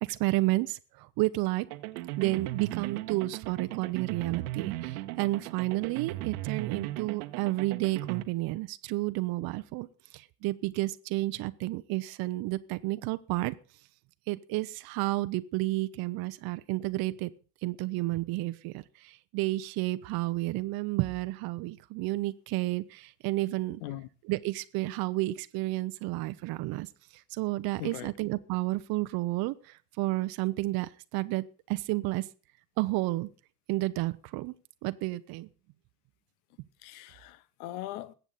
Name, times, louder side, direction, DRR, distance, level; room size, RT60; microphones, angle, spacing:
voice 1, 0.0-1.7 2.2-9.9 10.1-13.5 14.3-17.3 17.6-23.8 24.2-32.3 32.8-33.3 33.7-34.5 34.8-35.5, right 19 dB, 45° right, 0.7 m, -31 dB
sound 1, 1.7-8.2, right 16 dB, 65° right, 1.1 m, -37 dB
voice 2, 27.8-28.1 36.8-38.1, left 14 dB, 65° left, 0.9 m, -40 dB
21.5 x 8.2 x 4.0 m
figure-of-eight pair, 65°, 49 cm